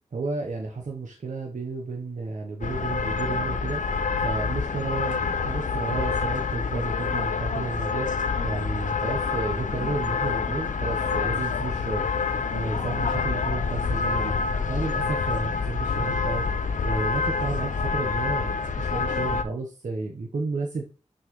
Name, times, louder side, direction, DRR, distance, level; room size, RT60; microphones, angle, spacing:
voice 1, 0.1-20.8, right 3 dB, 85° right, 0 dB, 1.0 m, -32 dB
sound 1, 2.6-19.4, left 5 dB, 90° left, 0.6 m, -27 dB
6.3 x 5.5 x 3.1 m, 0.34 s
wide cardioid pair, 65°, 13 cm